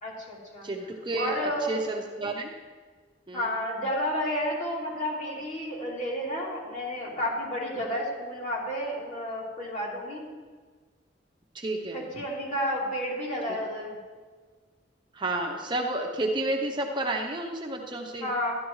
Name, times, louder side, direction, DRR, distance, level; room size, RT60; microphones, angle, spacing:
voice 1, 0.0-0.7 1.1-1.8 3.3-10.2 11.9-14.0 18.2-18.6, equal, 40° left, -5 dB, 3.0 m, -31 dB
voice 2, 0.6-2.5 3.3-3.5 11.5-12.0 15.1-18.3, right 2 dB, 25° right, 2 dB, 0.8 m, -31 dB
12.5 x 12.0 x 3.2 m, 1.5 s
head